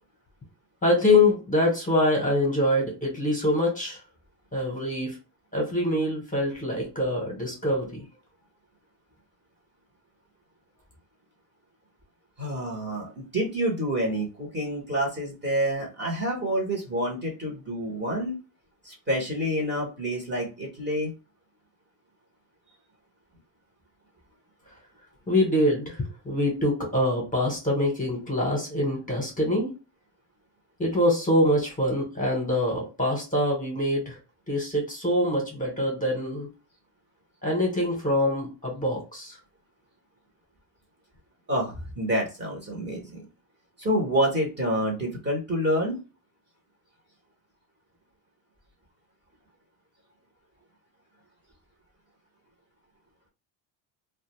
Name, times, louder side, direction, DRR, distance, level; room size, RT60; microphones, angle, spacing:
voice 1, 0.8-4.0 4.5-5.2 5.5-8.1 25.3-29.7 30.8-34.2 34.5-36.5 37.4-39.4, left 1 dB, 15° left, 0 dB, 0.9 m, -25 dB
voice 2, 12.4-18.4 18.8-21.1 41.5-43.2 43.8-46.0, equal, 20° right, -1 dB, 0.9 m, -28 dB
2.3 x 2.2 x 2.9 m, 0.31 s
cardioid pair, 130°, 48 cm